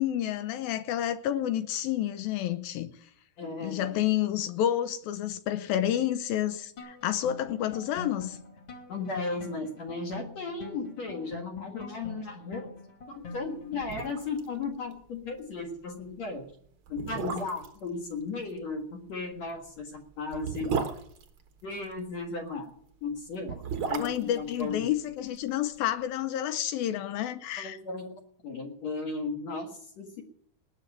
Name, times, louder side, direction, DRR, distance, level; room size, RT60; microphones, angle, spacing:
voice 1, 0.0-2.9 3.6-8.4 23.9-27.8, left 11 dB, 75° left, 2.3 m, -29 dB
voice 2, 3.4-4.0 8.9-12.7 13.1-16.5 16.9-20.7 21.6-22.7 23.0-24.9 27.6-30.2, left 3 dB, 50° left, 2.4 m, -36 dB
sound 1, 6.8-14.4, left 3 dB, 35° left, 2.7 m, -45 dB
sound 2, 13.4-13.5 13.8-14.5 14.7-14.8 15.2-15.4 16.1-16.2 16.9-17.8 19.3-22.0 23.3-25.5 25.8-25.9, right 6 dB, 70° right, 1.2 m, -35 dB
19.5 x 6.7 x 8.3 m
omnidirectional pair, 4.6 m